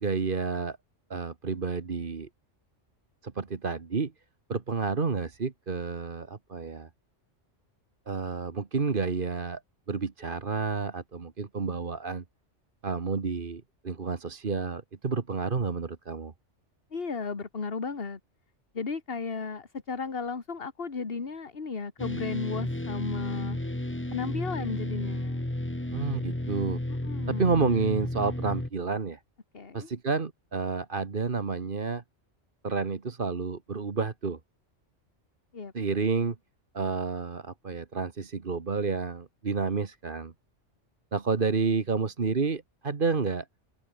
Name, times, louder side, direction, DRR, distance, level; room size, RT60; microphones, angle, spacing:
voice 1, 0.0-0.8 1.1-2.3 3.2-4.1 4.5-6.9 8.1-9.6 9.9-12.2 12.8-16.3 25.9-26.8 27.3-29.2 29.7-32.0 32.6-34.4 35.7-36.3 36.7-40.3 41.1-43.5, right 4 dB, 45° right, 1.6 m, -30 dB
voice 2, 16.9-18.2 18.7-23.6 24.1-25.4 26.9-27.6 29.5-29.9 35.5-35.7, left 4 dB, 50° left, 2.0 m, -34 dB
sound 1, 22.0-28.7, left 1 dB, 10° left, 1.7 m, -33 dB
omnidirectional pair, 1.3 m